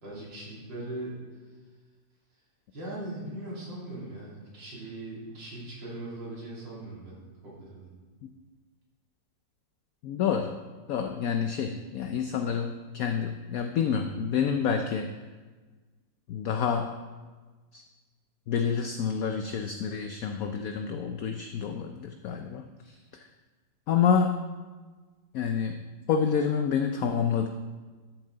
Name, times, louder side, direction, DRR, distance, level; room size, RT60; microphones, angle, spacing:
voice 1, 0.0-1.2 2.7-7.2 7.4-7.9, right 1 dB, 80° right, -7 dB, 3.5 m, -39 dB
voice 2, 10.0-10.5 10.9-15.1 16.3-16.9 17.7-17.8 18.5-23.3 23.9-24.3 25.3-25.8 26.1-27.5, left 7 dB, 65° left, 6 dB, 0.9 m, -28 dB
13.0 x 7.2 x 3.9 m, 1.3 s
omnidirectional pair, 2.0 m